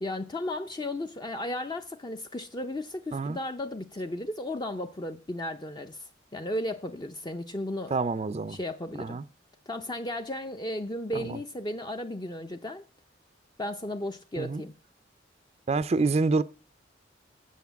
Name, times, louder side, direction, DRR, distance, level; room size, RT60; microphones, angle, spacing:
voice 1, 0.0-7.9 8.5-9.2 9.7-12.8 13.6-14.7, left 1 dB, 25° left, 0.5 m, -35 dB
voice 2, 7.9-8.6 9.0-9.2 11.1-11.4 14.4-14.6 15.7-16.4, right 3 dB, 35° right, 0.4 m, -27 dB
8.4 x 6.5 x 8.0 m
head